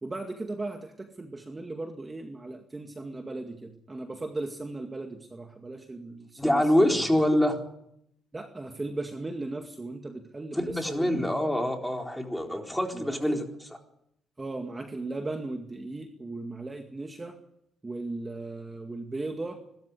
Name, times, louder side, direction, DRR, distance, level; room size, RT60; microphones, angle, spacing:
voice 1, 0.0-7.0 8.3-11.3 12.9-13.4 14.4-17.4 17.8-19.6, right 2 dB, 20° right, 4 dB, 2.0 m, -37 dB
voice 2, 6.4-7.6 10.5-13.4, left 1 dB, 5° left, 3 dB, 4.1 m, -25 dB
21.5 x 13.5 x 9.7 m, 0.75 s
cardioid pair, 90°, 0 cm